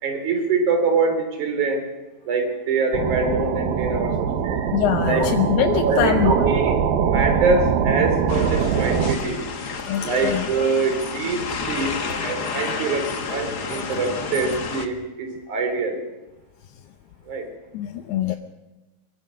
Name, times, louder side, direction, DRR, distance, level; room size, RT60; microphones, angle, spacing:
voice 1, 0.0-1.9 2.2-4.8 5.0-5.3 5.8-9.4 10.0-16.0 17.3-17.5 18.3-18.4, right 3 dB, 50° right, 5 dB, 4.9 m, -24 dB
sound 1, 2.9-9.2, right 7 dB, 75° right, 3.1 m, -22 dB
voice 2, 4.7-6.3 9.9-10.4 17.7-18.4, left 11 dB, 90° left, 5 dB, 3.0 m, -23 dB
sound 2, 8.3-14.9, left 5 dB, 55° left, 1.0 m, -30 dB
23.5 x 23.5 x 6.5 m, 1.1 s
omnidirectional pair, 4.5 m